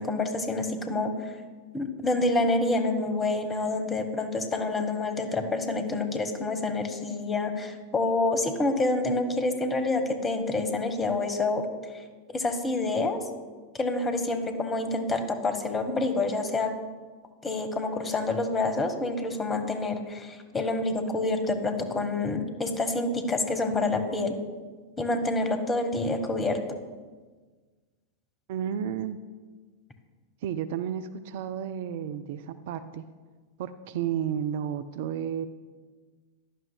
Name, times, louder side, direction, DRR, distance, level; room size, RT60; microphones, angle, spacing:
voice 1, 0.0-1.3 1.7-11.6 11.9-12.0 12.3-13.2 13.7-16.7 17.4-24.4 25.0-26.6, left 2 dB, 20° left, 7 dB, 1.1 m, -27 dB
voice 2, 28.5-29.2 30.4-33.1 33.6-35.5, right 9 dB, 50° right, 12 dB, 0.4 m, -32 dB
15.5 x 11.0 x 2.2 m, 1.4 s
figure-of-eight pair, 90°, 0 cm